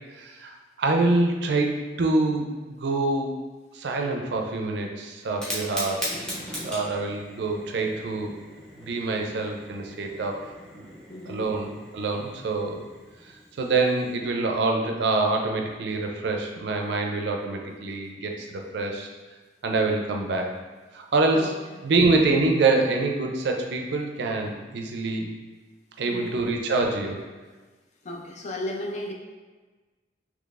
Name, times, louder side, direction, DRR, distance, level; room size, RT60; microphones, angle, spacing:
voice 1, 0.1-3.3 3.7-6.1 6.6-8.3 8.8-10.9 11.3-12.8 13.6-18.5 18.7-19.1 19.6-20.5 20.9-21.5 21.8-25.3 26.0-27.2, right 3 dB, 75° right, 2 dB, 0.4 m, -25 dB
Fire, 5.2-14.1, equal, 5° left, 0.7 m, -39 dB
voice 2, 11.1-11.5 21.3-21.5 26.1-26.4 28.0-29.1, left 1 dB, 40° left, 1 dB, 0.4 m, -34 dB
3.8 x 3.0 x 2.4 m, 1.3 s
head